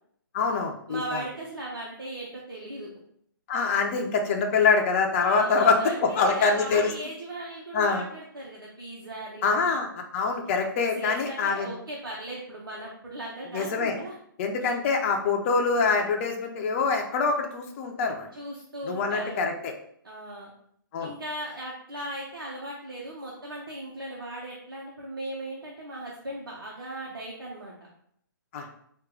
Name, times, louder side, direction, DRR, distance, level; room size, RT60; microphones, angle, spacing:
voice 1, 0.3-1.2 3.5-6.9 7.7-8.0 9.4-9.9 10.1-11.7 13.5-13.9 14.4-18.3 18.9-19.7 20.9-21.1 28.5-28.7, left 4 dB, 35° left, 3 dB, 0.7 m, -25 dB
voice 2, 0.9-2.9 5.2-9.6 10.9-14.2 14.6-14.7 18.3-19.5 20.0-20.5 21.0-27.7, right 1 dB, 80° right, -4 dB, 1.1 m, -38 dB
4.7 x 2.6 x 3.8 m, 0.68 s
figure-of-eight pair, 135°, 12 cm